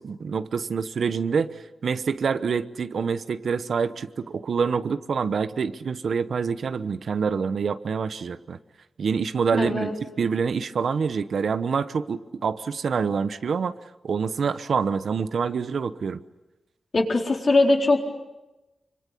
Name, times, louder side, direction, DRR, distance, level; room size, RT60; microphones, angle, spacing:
voice 1, 0.0-1.5 1.8-8.6 9.0-9.9 10.2-13.7 14.0-16.2, right 6 dB, 70° right, 12 dB, 1.0 m, -26 dB
voice 2, 16.9-18.0, left 2 dB, 45° left, 1 dB, 4.3 m, -20 dB
26.0 x 25.0 x 8.6 m, 1.0 s
wide cardioid pair, 120°, 0 cm